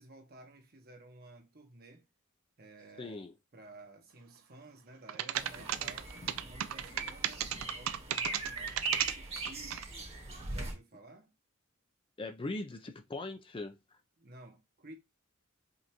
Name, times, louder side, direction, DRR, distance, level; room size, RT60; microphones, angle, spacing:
voice 1, 0.0-2.0 2.6-3.2 3.5-6.1 6.4-9.9 10.5-11.3 14.2-14.9, right 2 dB, 45° right, 1.0 m, -54 dB
voice 2, 3.0-3.3 6.2-6.3 12.2-14.0, left 2 dB, 25° left, 0.4 m, -40 dB
sound 1, 5.1-9.8, right 11 dB, 70° right, 0.4 m, -34 dB
sound 2, 5.3-10.7, right 3 dB, 30° right, 1.2 m, -40 dB
5.1 x 2.6 x 2.9 m
head